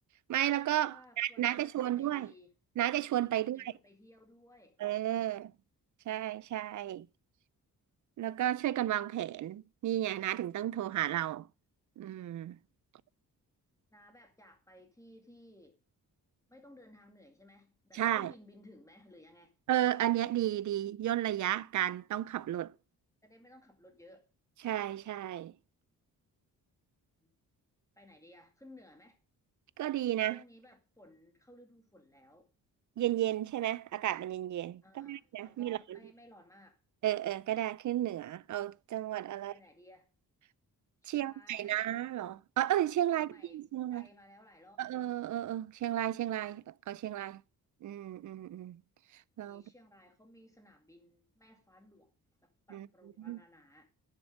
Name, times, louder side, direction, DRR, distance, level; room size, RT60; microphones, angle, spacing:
voice 1, 0.3-2.3 2.8-3.7 4.8-5.5 6.1-7.1 8.2-11.5 12.0-12.6 17.9-18.3 19.7-22.7 24.6-25.5 29.8-30.4 33.0-36.0 37.0-39.5 41.0-44.1 44.8-47.4 47.8-48.8 49.4-49.6 52.7-52.9 53.2-53.4, right 12 dB, 55° right, 0.5 m, -33 dB
voice 2, 0.9-2.5 3.3-4.8 13.9-15.8 16.5-19.5 23.2-24.3 27.2-27.3 28.0-29.2 30.3-32.5 34.8-36.8 39.4-40.1 41.0-41.8 43.1-43.6 43.9-44.8 49.4-52.1 52.4-53.9, left 1 dB, 10° left, 2.0 m, -58 dB
10.5 x 6.8 x 5.2 m
cardioid pair, 110°, 36 cm